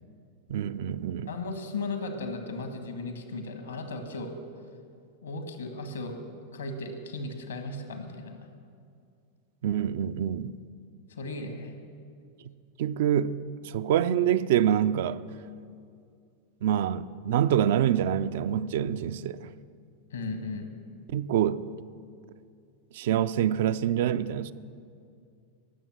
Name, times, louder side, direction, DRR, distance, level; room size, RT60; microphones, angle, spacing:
voice 1, 0.5-1.3 9.6-10.5 12.8-13.4 13.6-15.2 16.6-19.5 21.1-21.7 22.9-24.5, right 10 dB, 55° right, 0.4 m, -26 dB
voice 2, 1.3-4.3 5.2-6.2 6.5-8.4 11.1-11.7 20.1-20.7, left 2 dB, 70° left, 1.7 m, -36 dB
18.5 x 7.4 x 6.4 m
figure-of-eight pair, 90°, 0 cm